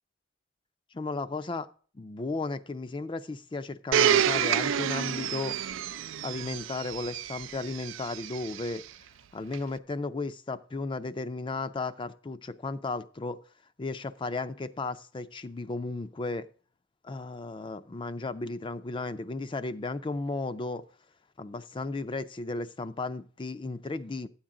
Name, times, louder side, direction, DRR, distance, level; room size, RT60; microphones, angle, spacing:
voice 1, 0.9-1.7 1.9-5.6 6.2-8.8 9.3-13.4 13.8-16.5 17.0-20.8 21.4-24.3, left 3 dB, 25° left, 0.4 m, -34 dB
Domestic sounds home sounds, 3.9-8.8 9.5-9.6, right 9 dB, 70° right, 0.4 m, -28 dB
12.5 x 8.7 x 3.7 m
head